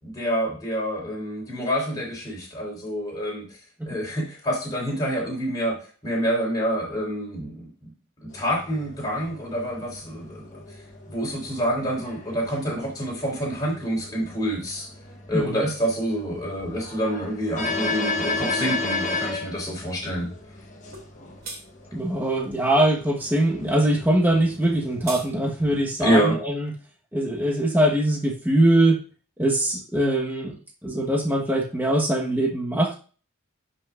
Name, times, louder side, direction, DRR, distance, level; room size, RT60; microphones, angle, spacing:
voice 1, 0.0-3.5 3.9-5.8 6.0-7.7 8.2-10.6 11.1-14.9 15.3-20.3 26.0-26.4, equal, 15° left, -3 dB, 3.9 m, -27 dB
sound 1, 8.3-25.8, left 2 dB, 35° left, 1.1 m, -34 dB
voice 2, 15.3-15.7 21.9-26.7 27.1-29.0 29.4-30.6 30.8-32.9, right 1 dB, 10° right, -1 dB, 1.2 m, -22 dB
sound 2, 20.9-21.1 21.4-21.6 24.6-25.3, right 3 dB, 45° right, 2.5 m, -36 dB
11.5 x 5.6 x 2.5 m, 0.37 s
head